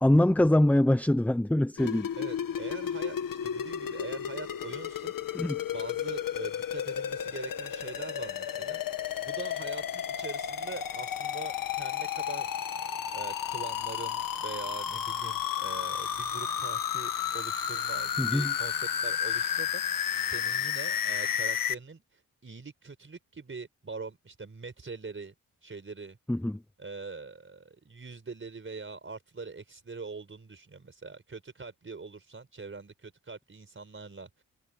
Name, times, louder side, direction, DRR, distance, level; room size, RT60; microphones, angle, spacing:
voice 1, 0.0-2.1 5.3-5.6 18.2-18.5 26.3-26.6, left 1 dB, 5° left, 0.6 m, -23 dB
sound 1, 1.8-21.7, left 9 dB, 85° left, 2.0 m, -32 dB
voice 2, 2.2-5.1 5.7-8.8 9.2-12.5 13.1-25.3 25.6-26.2 26.8-34.4, right 4 dB, 40° right, 5.3 m, -43 dB
cardioid pair, 70°, 33 cm